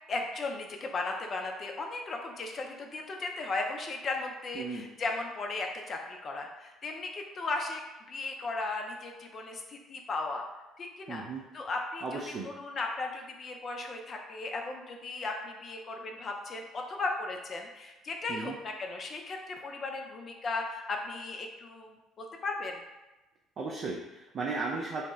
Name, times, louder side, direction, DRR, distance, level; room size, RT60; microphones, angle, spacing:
voice 1, 0.1-7.8 8.1-10.4 10.8-11.2 11.5-22.8, left 3 dB, 40° left, 2 dB, 0.4 m, -36 dB
voice 2, 11.1-11.4 12.0-12.5 18.3-18.6 23.6-25.1, right 3 dB, 45° right, -2 dB, 0.4 m, -35 dB
2.7 x 2.1 x 3.0 m, 1.1 s
figure-of-eight pair, 50°, 0 cm